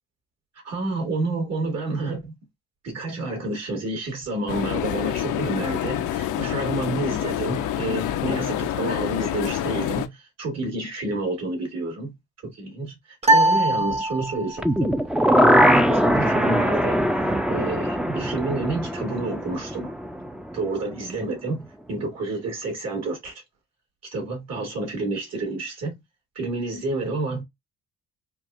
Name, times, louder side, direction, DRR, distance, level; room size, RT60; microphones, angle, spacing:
voice 1, 0.6-2.3 2.8-12.1 12.4-14.9 15.3-15.6 15.9-19.9 20.5-23.4 24.1-26.0 26.4-27.4, right 2 dB, 60° right, 2.2 m, -29 dB
sound 1, 4.5-10.1, left 11 dB, 85° left, 0.7 m, -27 dB
sound 2, 13.2-14.7, right 1 dB, 20° right, 0.8 m, -20 dB
sound 3, 14.6-20.6 20.9-21.0, equal, ahead, 0.5 m, -21 dB
4.4 x 2.5 x 2.4 m
cardioid pair, 90°, 30 cm